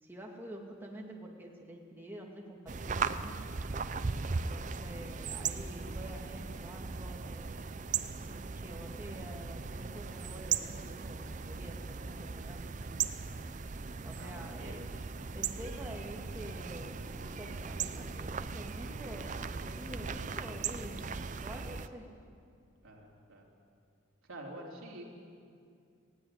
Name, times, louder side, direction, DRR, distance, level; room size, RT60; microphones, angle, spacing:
voice 1, 0.0-3.3 4.2-7.6 8.2-13.1 14.0-14.8 15.3-22.1, right 1 dB, 10° right, -1 dB, 2.2 m, -47 dB
sound 1, 2.7-21.9, right 5 dB, 35° right, 0.5 m, -38 dB
voice 2, 4.6-4.9 12.8-13.0 14.1-15.1 22.8-23.5 24.3-25.0, right 1 dB, 80° right, -2 dB, 3.7 m, -49 dB
18.0 x 15.5 x 9.6 m, 2.4 s
head